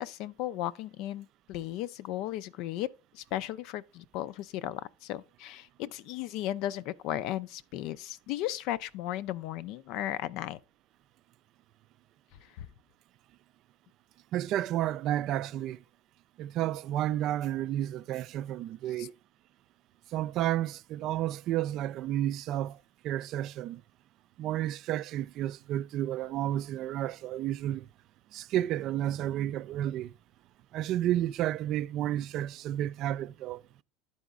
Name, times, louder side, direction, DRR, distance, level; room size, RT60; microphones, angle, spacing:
voice 1, 0.0-2.9 3.1-10.6 12.6-12.7 19.0-19.1, left 13 dB, 60° left, 0.4 m, -35 dB
voice 2, 14.3-15.8 16.4-19.2 20.1-22.8 23.0-23.8 24.4-27.9 28.3-30.1 30.7-33.6, right 12 dB, 50° right, 0.3 m, -31 dB
11.5 x 4.1 x 3.5 m
supercardioid pair, 100°, 0 cm